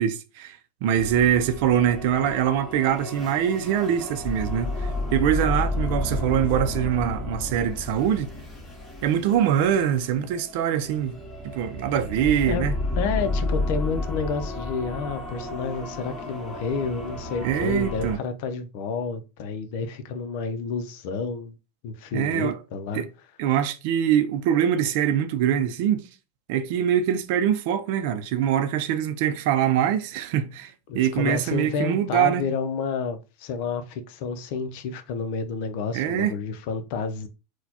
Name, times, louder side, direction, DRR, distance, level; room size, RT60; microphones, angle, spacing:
voice 1, 0.0-8.3 9.0-12.7 17.4-18.2 22.1-22.6 22.9-23.1 23.4-26.1 26.5-32.4 35.9-36.3, right 9 dB, 65° right, 0.5 m, -24 dB
sound 1, 1.0-18.2, left 2 dB, 20° left, 1.7 m, -32 dB
voice 2, 13.0-21.5 21.8-23.1 30.9-37.3, left 5 dB, 65° left, 0.6 m, -30 dB
4.1 x 2.2 x 2.8 m
supercardioid pair, 115°, 0 cm